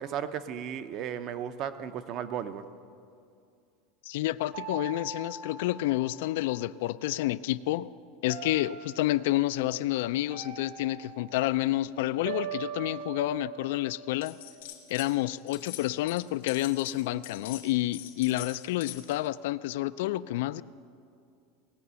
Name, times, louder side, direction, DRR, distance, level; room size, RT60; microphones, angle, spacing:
voice 1, 0.0-2.7, right 9 dB, 35° right, 11 dB, 0.6 m, -35 dB
voice 2, 4.1-7.9 8.2-14.4 14.9-20.6, left 16 dB, 70° left, 16 dB, 0.3 m, -29 dB
sound 1, 4.5-6.9 8.3-9.3 10.3-11.6 12.2-14.6, right 7 dB, 65° right, 2.1 m, -42 dB
sound 2, 14.2-15.1 15.4-19.3, left 13 dB, 85° left, 1.8 m, -44 dB
18.0 x 8.5 x 6.8 m, 2.4 s
supercardioid pair, 170°, 0 cm